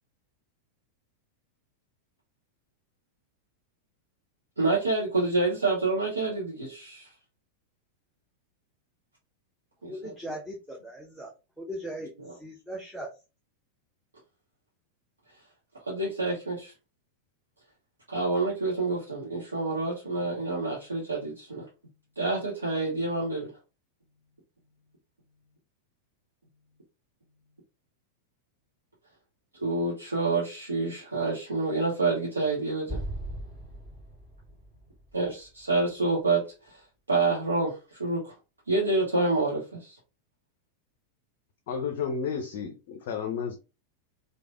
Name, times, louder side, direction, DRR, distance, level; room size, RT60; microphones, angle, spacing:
voice 1, 4.6-7.1 9.8-10.1 15.8-16.7 18.1-21.6 22.2-23.5 29.6-33.0 35.1-36.8 37.1-38.3 38.7-39.9, right 3 dB, 75° right, 0.8 m, -28 dB
voice 2, 9.9-12.1 12.4-13.1, equal, ahead, 0.6 m, -39 dB
Explosion, 32.9-36.2, right 1 dB, 30° right, 1.5 m, -39 dB
voice 3, 41.7-43.5, left 6 dB, 50° left, 0.4 m, -32 dB
3.1 x 2.0 x 2.4 m
figure-of-eight pair, 90°, 0 cm